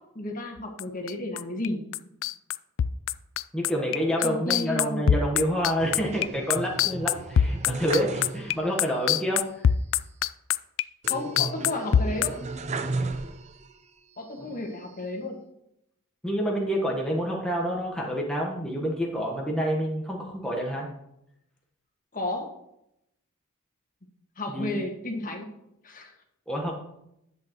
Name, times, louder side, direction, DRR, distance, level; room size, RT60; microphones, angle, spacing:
voice 1, 0.1-1.8 4.2-5.1 11.1-12.4 14.2-15.4 22.1-22.5 24.4-25.5 25.8-26.1, left 2 dB, 40° left, 2 dB, 1.6 m, -32 dB
sound 1, 0.6-1.7 1.9-12.3, left 9 dB, 60° left, 0.3 m, -23 dB
voice 2, 3.5-9.7 14.4-14.5 16.2-20.9 24.5-24.8 26.5-26.7, equal, 5° left, -2 dB, 1.1 m, -28 dB
sound 2, 5.8-8.8 9.1-9.2 11.0-13.8 14.3-15.1, right 3 dB, 30° right, 0.5 m, -35 dB
10.5 x 8.4 x 3.0 m, 0.80 s
head